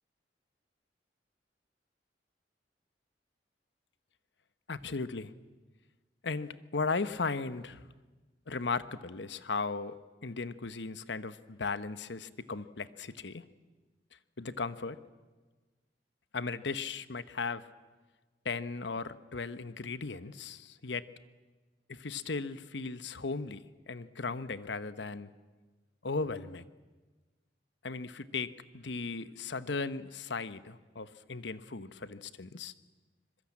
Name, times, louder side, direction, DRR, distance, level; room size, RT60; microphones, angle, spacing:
voice 1, 4.7-5.3 6.2-7.9 8.5-9.9 10.2-13.4 14.4-15.0 16.3-17.6 18.4-21.0 21.9-25.3 26.0-26.6 27.8-32.7, left 4 dB, 80° left, 14 dB, 1.0 m, -36 dB
25.5 x 22.5 x 8.6 m, 1.3 s
head